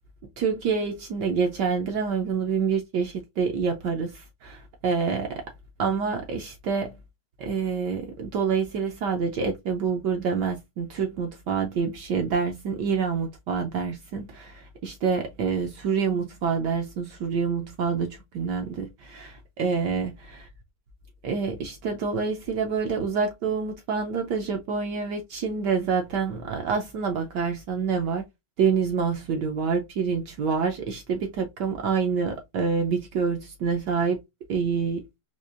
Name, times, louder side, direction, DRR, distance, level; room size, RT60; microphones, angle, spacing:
voice 1, 0.4-5.5 5.8-6.9 7.4-20.4 21.2-28.2 28.6-34.2 34.5-35.0, right 5 dB, 70° right, 1.1 m, -27 dB
4.4 x 2.4 x 2.4 m
omnidirectional pair, 2.2 m